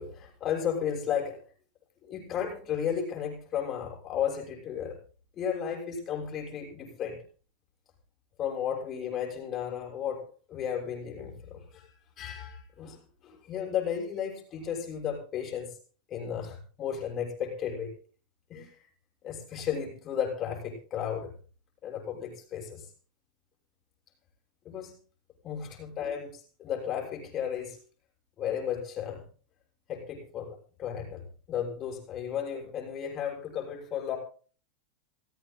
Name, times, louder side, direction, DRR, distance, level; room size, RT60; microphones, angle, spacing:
voice 1, 0.0-1.4 2.0-5.0 5.3-7.2 8.4-10.2 10.5-11.9 12.2-15.8 16.1-17.9 18.5-18.8 19.2-21.3 21.8-22.9 24.6-24.9 25.4-27.8 28.4-29.2 29.9-34.2, left 8 dB, 30° left, 0 dB, 6.5 m, -34 dB
28.0 x 16.5 x 2.2 m, 0.40 s
figure-of-eight pair, 90°, 0 cm